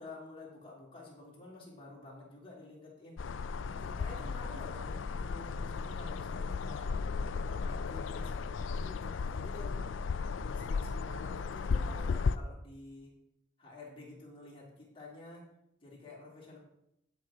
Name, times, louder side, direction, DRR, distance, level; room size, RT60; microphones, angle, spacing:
voice 1, 0.0-3.2 3.7-7.0 7.4-9.9 10.4-13.1 13.6-15.5 15.8-16.6, left 2 dB, 30° left, -4 dB, 3.1 m, -50 dB
sound 1, 3.2-12.4, left 5 dB, 85° left, 0.4 m, -35 dB
16.0 x 5.9 x 3.8 m, 0.80 s
head